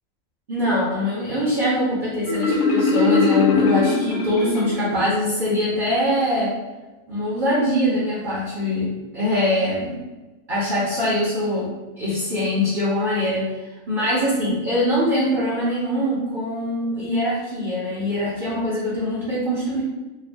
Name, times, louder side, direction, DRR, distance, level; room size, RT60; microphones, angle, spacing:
voice 1, 0.5-6.5 7.1-8.9 9.1-10.0 10.5-13.5 13.9-19.8, left 1 dB, 40° right, -8 dB, 0.9 m, -23 dB
Marimba xylophone, 2.3-5.0, left 4 dB, 60° left, 1.0 m, -21 dB
3.5 x 2.2 x 3.4 m, 1.2 s
omnidirectional pair, 1.5 m